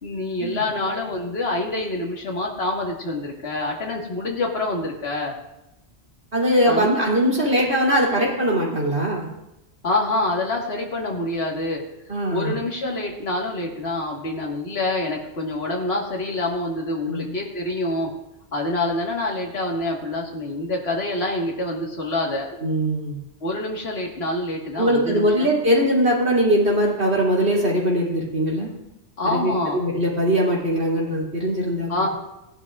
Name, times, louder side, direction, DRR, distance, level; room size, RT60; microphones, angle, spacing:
voice 1, 0.0-5.4 6.7-6.9 9.8-11.8 12.3-18.1 18.5-22.5 23.4-25.5 29.2-29.8 31.9-32.1, left 2 dB, 65° left, -1 dB, 1.9 m, -26 dB
voice 2, 6.3-9.3 12.1-12.5 17.1-17.2 22.6-23.2 24.7-28.7 29.2-32.1, equal, 70° right, -4 dB, 3.3 m, -21 dB
18.0 x 11.5 x 2.4 m, 0.93 s
omnidirectional pair, 1.1 m